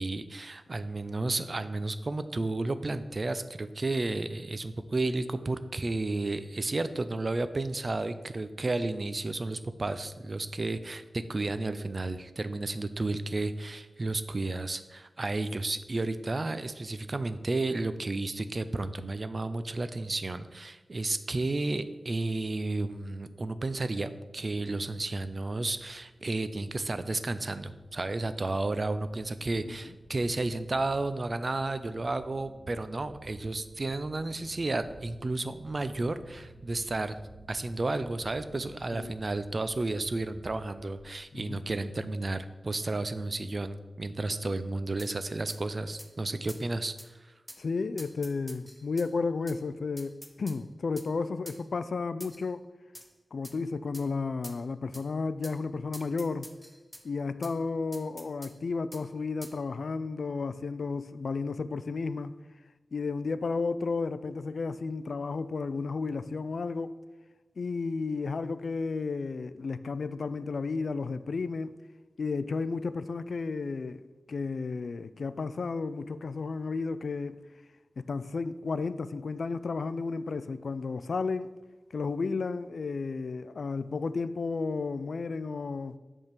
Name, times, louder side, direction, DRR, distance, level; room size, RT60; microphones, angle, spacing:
voice 1, 0.0-37.2 37.5-47.3, right 2 dB, 40° right, 0.4 m, -32 dB
sound 1, 24.3-41.2, right 1 dB, 35° left, 2.3 m, -54 dB
voice 2, 41.3-41.6 47.6-52.7 53.3-56.5 57.0-62.4 62.9-67.0 67.6-71.8 72.2-74.0 74.3-77.4 78.0-81.5 81.9-86.0, left 4 dB, 75° left, 0.3 m, -33 dB
sound 2, 45.0-45.1 45.5-45.6 46.0-46.1 46.5-46.6 47.0-47.1 47.5-47.6 48.0-49.1 49.5-49.6 50.0-50.6 51.0-51.1 51.5-51.6 52.2-52.5 52.9-53.1 53.4-53.6 53.9-54.1 54.4-54.6 54.9-55.1 55.4-55.6 55.9-57.0 57.4-57.5 57.9-58.5 58.9-59.0 59.4-59.6, equal, ahead, 0.6 m, -47 dB
7.9 x 3.6 x 6.6 m
wide cardioid pair, 110°, 0 cm